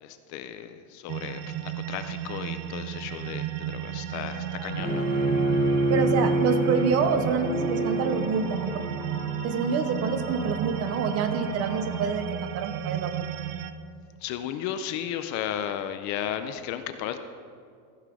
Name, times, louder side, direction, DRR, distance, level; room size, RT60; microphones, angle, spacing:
voice 1, 0.0-5.1 14.2-17.2, left 10 dB, 40° left, 9 dB, 0.5 m, -34 dB
sound 1, 1.1-13.7, right 11 dB, 75° right, 0.7 m, -34 dB
sound 2, 4.3-12.3, left 5 dB, 75° left, 2.8 m, -44 dB
Bowed string instrument, 4.8-9.9, right 1 dB, 20° left, 1.1 m, -27 dB
voice 2, 5.9-8.8 9.4-13.3, right 5 dB, 35° right, 9 dB, 0.6 m, -27 dB
15.0 x 5.8 x 4.9 m, 2.3 s
cardioid pair, 155°, 45 cm